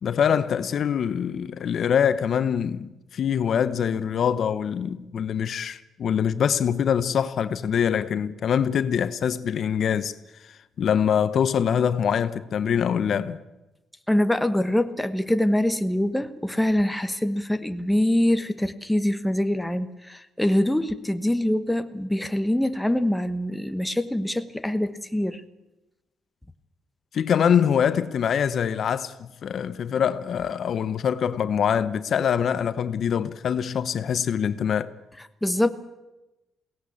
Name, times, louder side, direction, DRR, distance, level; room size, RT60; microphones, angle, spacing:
voice 1, 0.0-10.1 10.4-13.4 27.1-34.9, left 8 dB, 60° left, 0.9 m, -24 dB
voice 2, 14.1-25.4 35.4-35.7, left 1 dB, 5° left, 1.2 m, -24 dB
22.0 x 17.5 x 8.6 m
cardioid pair, 90°, 0 cm